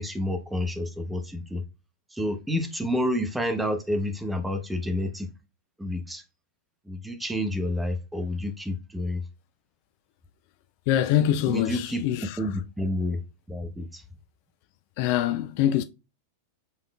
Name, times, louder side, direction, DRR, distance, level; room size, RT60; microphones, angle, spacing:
voice 1, 0.0-1.6 2.1-5.3 5.8-6.2 6.9-9.2 11.5-12.0 12.4-13.2 13.5-14.0, left 1 dB, 5° right, 0.8 m, -29 dB
voice 2, 10.9-12.4 15.0-15.8, left 11 dB, 50° left, 0.3 m, -24 dB
5.6 x 3.5 x 2.2 m
figure-of-eight pair, 90°, 0 cm